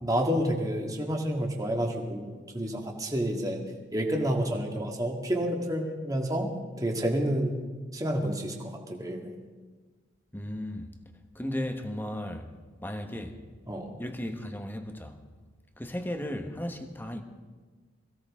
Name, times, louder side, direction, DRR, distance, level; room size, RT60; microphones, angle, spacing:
voice 1, 0.0-3.6 3.9-6.5 6.8-7.5 7.9-9.3 13.7-13.9, equal, 20° right, 1.9 m, -29 dB
voice 2, 10.3-10.9 11.3-12.5 12.8-13.4 14.0-15.2 15.8-17.2, left 1 dB, 10° left, 1.2 m, -35 dB
22.0 x 16.0 x 3.7 m
head